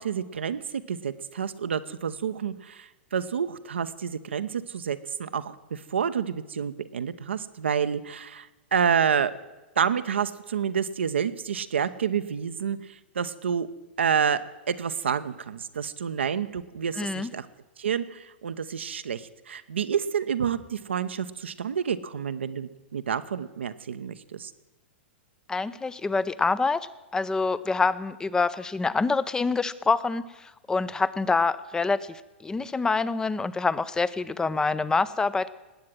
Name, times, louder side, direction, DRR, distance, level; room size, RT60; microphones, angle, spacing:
voice 1, 0.0-9.3 9.8-13.7 14.0-17.5 17.8-24.5, right 7 dB, 75° right, 11 dB, 0.8 m, -29 dB
voice 2, 17.0-17.3 25.5-35.5, left 4 dB, 10° left, 17 dB, 0.6 m, -26 dB
19.5 x 8.6 x 7.6 m, 1.1 s
figure-of-eight pair, 105°, 6 cm